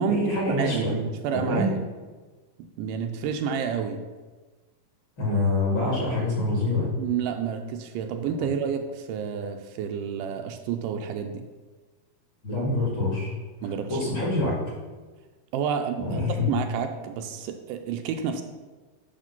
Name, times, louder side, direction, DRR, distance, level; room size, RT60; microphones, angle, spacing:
voice 1, 0.1-0.9 1.5-1.7 5.2-6.9 8.4-8.5 12.4-13.3 13.6-14.5 16.0-16.5, left 2 dB, 40° left, -5 dB, 2.4 m, -25 dB
voice 2, 0.6-1.8 2.6-4.0 7.0-11.5 13.6-14.1 15.5-16.2 16.5-18.4, right 7 dB, 80° right, 6 dB, 2.1 m, -29 dB
9.9 x 3.5 x 5.8 m, 1.3 s
omnidirectional pair, 3.9 m